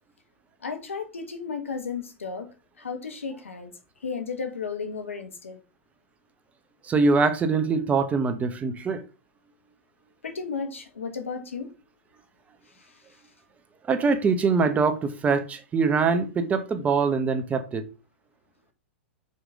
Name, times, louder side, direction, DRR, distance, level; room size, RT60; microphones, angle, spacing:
voice 1, 0.6-2.5 2.8-3.7 4.0-5.6 10.2-11.7 12.7-13.0, left 5 dB, 90° left, 1.5 m, -34 dB
voice 2, 6.9-9.0 13.9-17.8, right 4 dB, 20° right, 1.1 m, -23 dB
5.6 x 5.0 x 3.7 m
hypercardioid pair, 110°, 7 cm